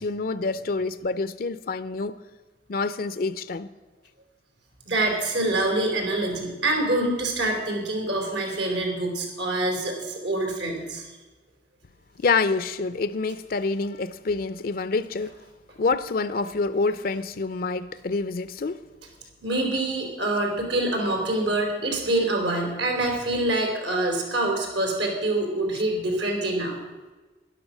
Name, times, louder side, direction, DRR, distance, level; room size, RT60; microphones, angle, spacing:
voice 1, 0.0-2.2 2.7-3.7 12.2-15.3 15.8-18.8, left 4 dB, 55° left, 0.5 m, -27 dB
voice 2, 4.9-11.1 19.4-26.8, right 2 dB, 85° right, 3.4 m, -25 dB
12.0 x 11.5 x 6.2 m
head